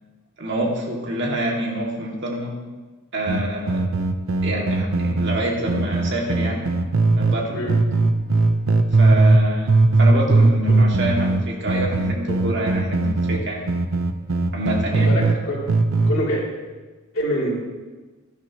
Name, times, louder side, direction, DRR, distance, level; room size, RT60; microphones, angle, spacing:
voice 1, 0.4-2.5 3.1-3.9 4.4-6.7 7.2-7.6 9.0-13.7 14.5-15.1, right 1 dB, 55° right, -1 dB, 2.4 m, -27 dB
sound 1, 3.3-7.4 7.7-9.4 9.7-15.4 15.7-16.2, right 2 dB, 70° right, 0.8 m, -19 dB
voice 2, 14.9-15.6 16.0-16.4 17.1-17.5, equal, 70° left, -4 dB, 3.3 m, -25 dB
16.5 x 11.5 x 3.1 m, 1.3 s
head